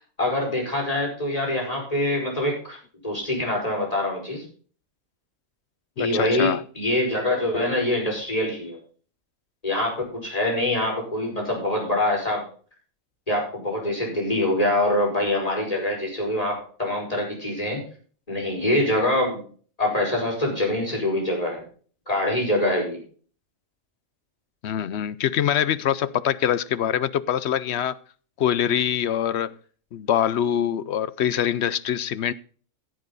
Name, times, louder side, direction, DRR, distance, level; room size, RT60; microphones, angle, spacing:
voice 1, 0.2-2.8 3.0-4.4 6.0-8.8 9.6-12.5 13.3-17.8 18.3-19.4 19.8-21.6 22.1-23.0, left 1 dB, 25° left, 5.3 m, -24 dB
voice 2, 6.0-6.6 24.6-28.0 28.4-29.5 29.9-32.3, left 10 dB, 60° left, 0.8 m, -24 dB
16.0 x 7.9 x 4.0 m
omnidirectional pair, 1.4 m